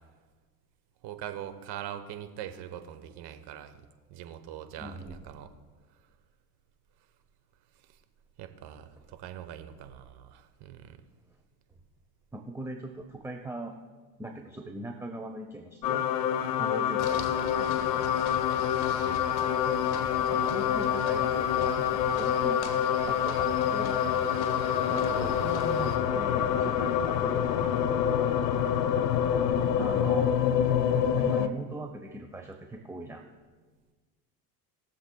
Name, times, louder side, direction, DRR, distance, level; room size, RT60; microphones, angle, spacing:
voice 1, 1.0-3.8 4.1-5.5 8.4-11.0 19.0-19.3, right 10 dB, 55° right, 9 dB, 1.2 m, -42 dB
voice 2, 4.8-5.2 12.3-13.7 14.2-16.1 16.6-18.1 20.3-22.6 23.1-24.4 24.9-27.7 29.6-30.4 31.1-33.2, right 1 dB, 5° right, 3 dB, 0.8 m, -40 dB
sound 1, 15.8-31.5, left 9 dB, 80° left, 0.8 m, -26 dB
sound 2, 17.0-26.0, left 7 dB, 50° left, 1.4 m, -41 dB
22.0 x 7.4 x 2.3 m, 1.4 s
supercardioid pair, 90°, 48 cm